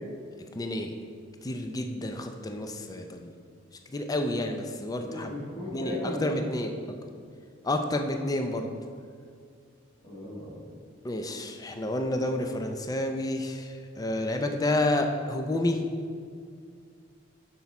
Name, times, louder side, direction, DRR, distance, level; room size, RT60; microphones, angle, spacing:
voice 1, 0.5-0.9 1.4-3.3 3.9-5.3 5.7-6.7 7.6-8.7 11.0-15.8, left 1 dB, 20° left, 5 dB, 0.4 m, -30 dB
voice 2, 5.1-6.3 10.0-10.6, left 1 dB, 35° left, -11 dB, 2.0 m, -36 dB
7.7 x 5.9 x 4.2 m, 2.2 s
head